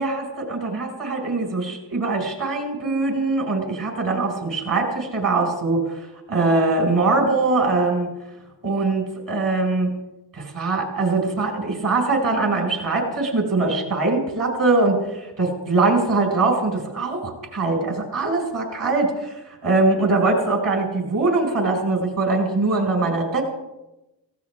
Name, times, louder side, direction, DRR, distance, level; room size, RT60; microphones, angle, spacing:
voice 1, 0.0-8.1 8.6-9.9 10.3-23.4, right 3 dB, 50° right, 1 dB, 5.6 m, -22 dB
18.0 x 15.5 x 3.6 m, 0.99 s
supercardioid pair, 55°, 43 cm